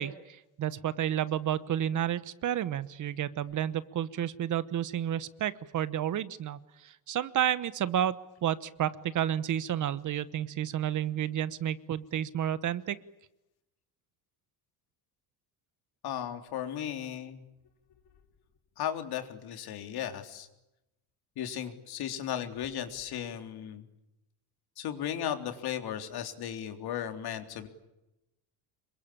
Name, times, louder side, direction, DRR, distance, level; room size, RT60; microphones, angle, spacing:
voice 1, 0.0-13.0, right 10 dB, 45° right, 16 dB, 1.1 m, -31 dB
voice 2, 16.0-17.4 18.8-20.5 21.4-23.8 24.8-27.7, left 10 dB, 60° left, 7 dB, 3.7 m, -36 dB
27.0 x 23.5 x 8.7 m, 0.92 s
cardioid pair, 135°, 43 cm